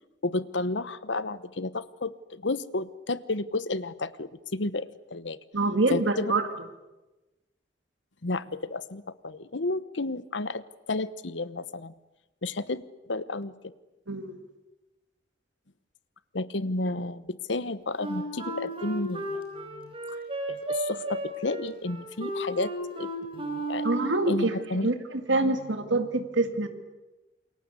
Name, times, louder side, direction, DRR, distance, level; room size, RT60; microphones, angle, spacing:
voice 1, 0.2-5.4 5.9-6.3 8.2-11.9 12.4-12.8 13.1-13.5 16.3-19.9 20.5-23.9 24.3-24.9, left 2 dB, 75° left, 16 dB, 1.0 m, -32 dB
voice 2, 5.5-6.4 14.1-14.4 23.8-26.7, right 2 dB, 80° right, 7 dB, 2.2 m, -26 dB
Wind instrument woodwind instrument, 18.0-24.3, right 1 dB, 30° right, 4.8 m, -33 dB
28.0 x 22.5 x 8.3 m, 1.1 s
head